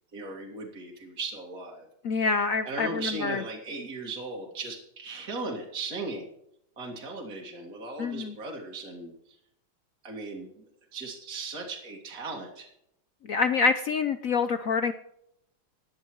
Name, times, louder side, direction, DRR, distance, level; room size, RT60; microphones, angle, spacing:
voice 1, 0.1-1.9 2.2-2.3 2.6-6.3 6.8-9.4 10.0-10.7 10.9-12.7, right 3 dB, 45° right, -1 dB, 2.6 m, -37 dB
voice 2, 2.0-3.4 8.0-8.3 13.3-14.9, left 4 dB, 70° left, 10 dB, 0.8 m, -26 dB
14.5 x 10.5 x 4.6 m, 0.74 s
omnidirectional pair, 2.3 m